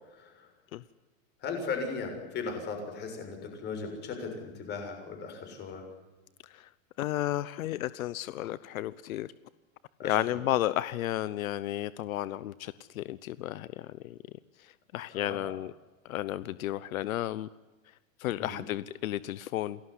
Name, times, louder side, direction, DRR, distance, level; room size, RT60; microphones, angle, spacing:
voice 1, 0.1-0.5 1.4-5.8 10.0-10.2 15.1-15.4 18.4-18.6, left 4 dB, 25° left, 5 dB, 6.8 m, -37 dB
voice 2, 7.0-9.3 10.0-14.2 14.6-15.7 16.0-17.5 17.9-18.0 18.2-19.8, left 14 dB, 75° left, 17 dB, 1.0 m, -33 dB
28.5 x 19.5 x 9.8 m, 1.2 s
supercardioid pair, 165°, 41 cm